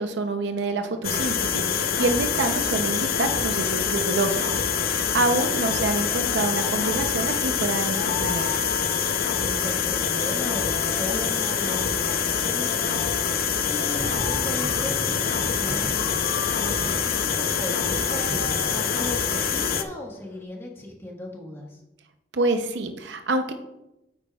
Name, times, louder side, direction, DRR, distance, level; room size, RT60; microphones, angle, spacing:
voice 1, 0.0-8.6 22.3-23.5, right 2 dB, 85° right, 7 dB, 0.6 m, -27 dB
sound 1, 1.0-19.8, left 7 dB, 55° left, 0.5 m, -25 dB
sound 2, 5.3-20.4, left 5 dB, 90° left, 0.8 m, -40 dB
voice 2, 9.4-16.2 16.6-21.8, left 1 dB, 15° left, -1 dB, 1.4 m, -37 dB
sound 3, 13.9-19.5, right 1 dB, 30° right, 0.5 m, -38 dB
9.6 x 8.5 x 2.3 m, 0.93 s
head